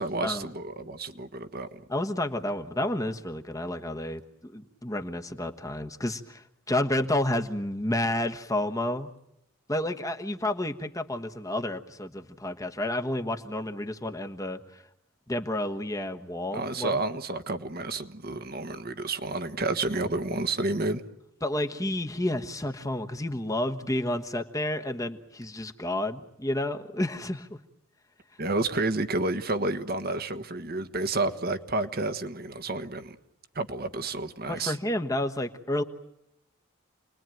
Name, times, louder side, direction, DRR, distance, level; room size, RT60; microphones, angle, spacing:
voice 1, 0.0-1.8 16.5-21.0 28.4-33.2 33.5-34.8, right 2 dB, 45° right, 9 dB, 1.3 m, -30 dB
voice 2, 1.9-9.1 9.7-14.8 15.3-17.0 21.4-27.6 34.5-35.8, left 1 dB, 15° left, 5 dB, 1.2 m, -30 dB
29.0 x 21.0 x 9.1 m, 0.85 s
head